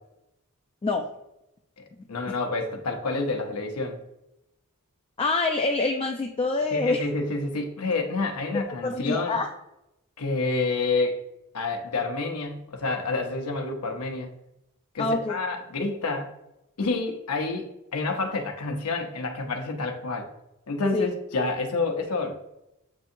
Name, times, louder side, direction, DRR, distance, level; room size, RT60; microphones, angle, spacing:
voice 1, 1.8-4.0 6.7-9.4 10.2-11.2 11.5-14.3 14.9-16.3 16.8-20.3 20.7-22.4, left 3 dB, 85° left, 4 dB, 0.8 m, -28 dB
voice 2, 5.2-7.0 8.8-9.5 15.0-15.4 20.9-21.1, left 3 dB, 25° left, 3 dB, 0.3 m, -25 dB
7.4 x 2.7 x 2.6 m, 0.88 s
head